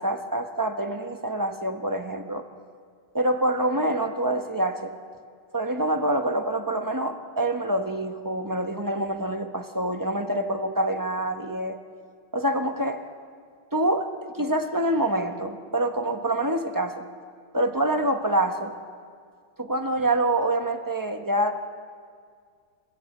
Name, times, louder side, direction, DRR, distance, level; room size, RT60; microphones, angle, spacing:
voice 1, 0.0-2.4 3.1-4.9 5.5-11.8 12.3-13.0 13.7-14.1 14.3-17.1 17.5-18.7 19.6-21.5, right 1 dB, 20° right, 5 dB, 0.5 m, -26 dB
27.0 x 15.5 x 7.8 m, 2.1 s
omnidirectional pair, 2.2 m